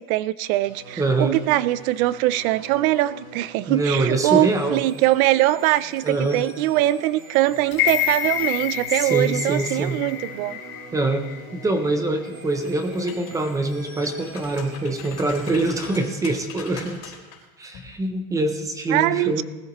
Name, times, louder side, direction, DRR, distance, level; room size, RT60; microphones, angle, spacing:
voice 1, 0.1-10.6 18.9-19.4, right 16 dB, 65° right, 18 dB, 0.6 m, -22 dB
sound 1, 0.6-16.1, right 3 dB, 90° right, 5.8 m, -43 dB
voice 2, 1.0-1.4 3.7-4.8 6.0-6.4 8.9-10.0 10.9-11.3 11.5-17.0 17.6-19.4, right 2 dB, 10° right, 6 dB, 0.5 m, -24 dB
sound 2, 7.7-11.8 12.2-12.3, left 12 dB, 70° left, 1.3 m, -28 dB
sound 3, 12.5-13.5 13.9-17.4 17.7-17.9, left 7 dB, 45° left, 3.7 m, -42 dB
20.0 x 14.0 x 3.0 m, 1.2 s
supercardioid pair, 170°, 45 cm